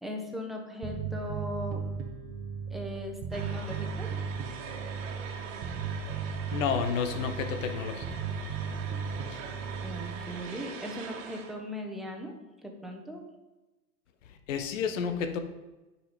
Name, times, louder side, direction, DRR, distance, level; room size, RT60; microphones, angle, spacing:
voice 1, 0.0-1.8 2.7-4.1 9.8-12.3 12.6-13.2, equal, ahead, 1 dB, 1.2 m, -38 dB
Bass guitar, 0.8-10.4, right 6 dB, 30° right, 1.1 m, -36 dB
sound 1, 3.3-11.5, right 6 dB, 55° right, 1.7 m, -42 dB
voice 2, 6.5-8.2 9.3-9.4 14.3-15.4, left 6 dB, 55° left, 8 dB, 1.1 m, -31 dB
9.4 x 5.3 x 5.3 m, 1.1 s
hypercardioid pair, 110°, 46 cm